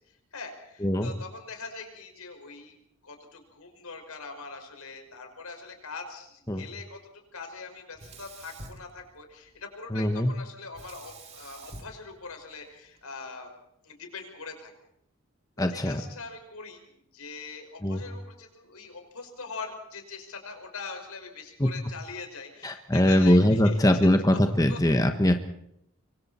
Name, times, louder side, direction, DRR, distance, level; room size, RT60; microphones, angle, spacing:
voice 1, 0.3-2.8 3.0-7.0 7.3-13.5 13.8-14.7 15.6-16.8 17.1-23.8 24.7-24.8, left 4 dB, 90° left, 4 dB, 5.6 m, -42 dB
Sink (filling or washing), 7.9-9.6 10.7-13.0, right 2 dB, 30° right, 2.4 m, -47 dB
voice 2, 9.9-10.3 15.6-16.0 17.8-18.0 21.6-21.7 22.6-25.3, left 1 dB, 15° left, 6 dB, 1.2 m, -22 dB
25.0 x 24.5 x 4.4 m, 0.76 s
head